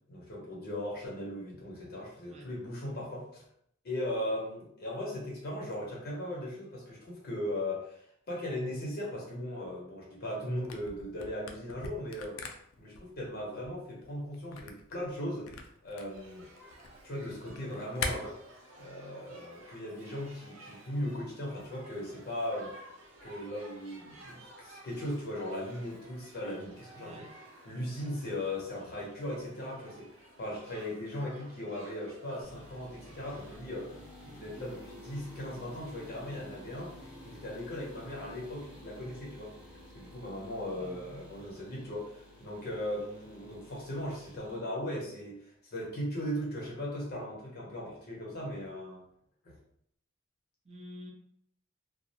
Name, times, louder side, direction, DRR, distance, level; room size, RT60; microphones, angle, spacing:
voice 1, 0.1-3.4 3.8-12.4 12.8-15.5 15.8-16.4 17.0-18.3 18.8-22.7 23.2-27.2 27.7-30.1 30.4-34.0 34.3-39.5 39.9-49.0 49.4-49.5, left 1 dB, 50° left, -3 dB, 0.7 m, -38 dB
Camera, 10.6-18.1, left 4 dB, 80° left, 0.4 m, -42 dB
Shout / Human group actions, 16.0-33.6, right 1 dB, 85° right, 0.7 m, -54 dB
voice 2, 27.0-27.3 28.0-28.3 40.7-41.2 50.6-51.1, equal, 35° right, 2 dB, 0.4 m, -49 dB
sound 1, 32.4-44.6, left 1 dB, 5° right, 0.8 m, -51 dB
2.4 x 2.0 x 2.7 m, 0.69 s
head